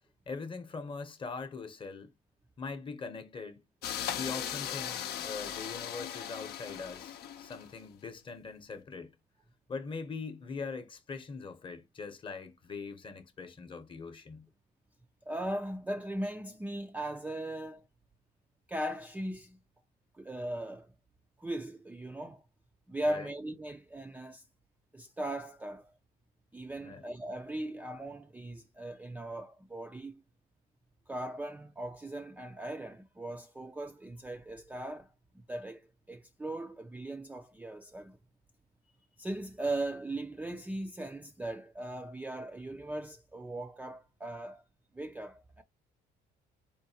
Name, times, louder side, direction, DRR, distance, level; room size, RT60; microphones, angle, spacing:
voice 1, 0.3-2.1 2.6-3.6 4.1-9.1 9.7-14.5 23.0-23.3 26.8-27.0, left 4 dB, 30° left, 0.8 m, -42 dB
sound 1, 3.8-7.9, left 10 dB, 70° left, 0.6 m, -38 dB
voice 2, 15.3-17.9 18.7-19.6 20.2-20.9 21.4-22.4 22.9-24.4 24.9-25.9 26.5-30.2 31.1-35.1 35.5-35.8 36.1-38.2 39.2-44.6 44.9-45.6, right 1 dB, 10° right, 0.3 m, -38 dB
4.5 x 2.6 x 2.7 m
cardioid pair, 110°, 17 cm